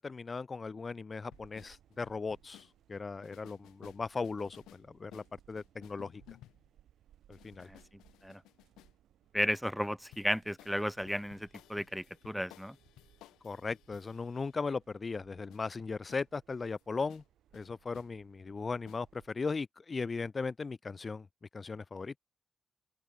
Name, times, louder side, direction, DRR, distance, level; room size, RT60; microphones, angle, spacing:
voice 1, 0.0-6.2 7.3-7.7 13.4-17.2 17.5-21.3 21.5-22.1, left 4 dB, 45° left, 0.4 m, -38 dB
sound 1, 1.3-2.7 3.2-4.9 5.1-6.7 7.3-8.9 10.1-14.7 15.5-15.6 16.1-16.3 16.8-16.9 17.1-17.3 17.5-18.1 18.9-19.0, left 15 dB, 85° left, 1.6 m, -58 dB
sound 2, 1.3-19.3, right 11 dB, 80° right, 4.1 m, -66 dB
voice 2, 9.3-12.8, equal, ahead, 0.6 m, -34 dB
open air
supercardioid pair, 45°, 0 cm